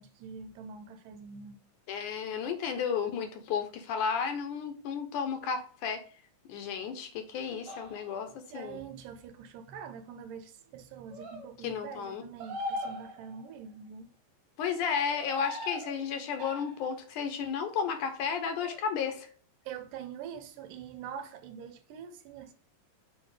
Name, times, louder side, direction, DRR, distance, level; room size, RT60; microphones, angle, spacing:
voice 1, 0.0-1.6 8.5-14.1 19.7-22.5, right 7 dB, 75° right, 2.2 m, -44 dB
voice 2, 1.9-6.0 6.5-8.3 8.5-8.8 11.6-12.2 14.6-19.3, left 6 dB, 75° left, 2.1 m, -33 dB
sound 1, 7.7-8.2 11.1-11.5 12.4-13.5 15.1-16.0 16.4-16.9 18.6-18.8, left 1 dB, 55° right, 1.6 m, -39 dB
6.6 x 5.0 x 3.2 m
omnidirectional pair, 4.0 m